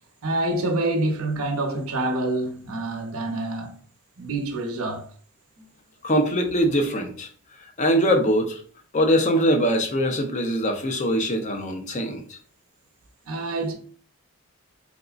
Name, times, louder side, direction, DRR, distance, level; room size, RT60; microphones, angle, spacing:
voice 1, 0.2-3.8 4.2-5.1 13.2-13.7, right 2 dB, 80° right, 0.8 m, -26 dB
voice 2, 6.0-7.3 7.8-8.6 8.9-12.2, equal, 35° left, 0.6 m, -22 dB
3.8 x 3.6 x 2.4 m
head